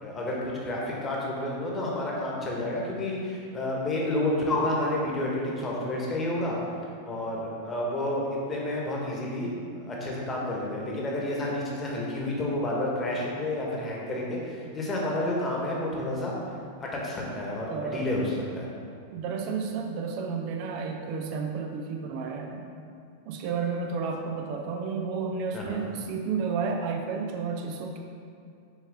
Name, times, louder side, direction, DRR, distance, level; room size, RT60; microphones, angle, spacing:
voice 1, 0.0-6.6 7.0-16.3 16.8-18.7 25.5-25.8, left 1 dB, 20° left, -3 dB, 1.6 m, -30 dB
voice 2, 17.7-18.2 19.1-22.7 23.3-28.0, right 5 dB, 45° right, 3 dB, 0.6 m, -31 dB
7.1 x 5.5 x 3.7 m, 2.4 s
figure-of-eight pair, 90°, 0 cm